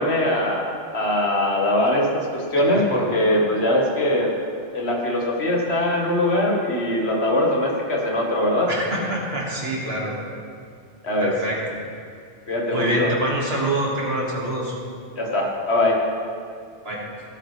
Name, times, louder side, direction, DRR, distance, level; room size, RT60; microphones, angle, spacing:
voice 1, 0.0-4.3 4.7-8.7 11.0-11.3 12.5-13.1 15.2-16.0, left 1 dB, 70° left, -1 dB, 1.8 m, -21 dB
voice 2, 2.5-3.0 8.7-10.2 11.2-11.7 12.7-14.7 16.8-17.1, right 1 dB, 65° right, -3 dB, 2.2 m, -26 dB
17.0 x 8.7 x 3.3 m, 2.2 s
omnidirectional pair, 1.1 m